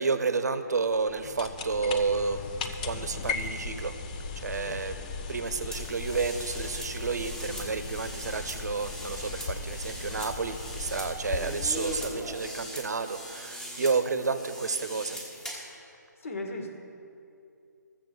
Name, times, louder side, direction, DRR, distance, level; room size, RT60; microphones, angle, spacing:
voice 1, 0.0-2.4 2.8-3.9 4.4-15.2, right 4 dB, 60° right, 10 dB, 0.9 m, -30 dB
sound 1, 0.9-12.7, left 4 dB, 25° left, 0.6 m, -38 dB
sound 2, 5.7-15.7, equal, 10° left, 1.4 m, -41 dB
voice 2, 16.2-16.7, left 2 dB, 45° left, 4 dB, 1.5 m, -37 dB
13.5 x 7.4 x 6.8 m, 2.5 s
figure-of-eight pair, 150°, 10 cm